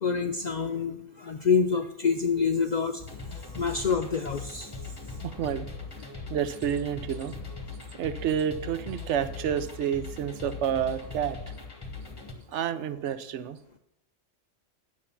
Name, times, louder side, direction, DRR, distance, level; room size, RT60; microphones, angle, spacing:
voice 1, 0.0-3.0 3.6-4.7, left 5 dB, 65° left, 7 dB, 0.4 m, -26 dB
sound 1, 3.0-12.3, left 4 dB, 20° left, 1.1 m, -40 dB
voice 2, 5.2-5.7 6.3-7.4 7.9-11.4 12.5-13.6, right 9 dB, 75° right, 13 dB, 0.9 m, -29 dB
9.0 x 6.5 x 5.7 m, 0.83 s
omnidirectional pair, 1.3 m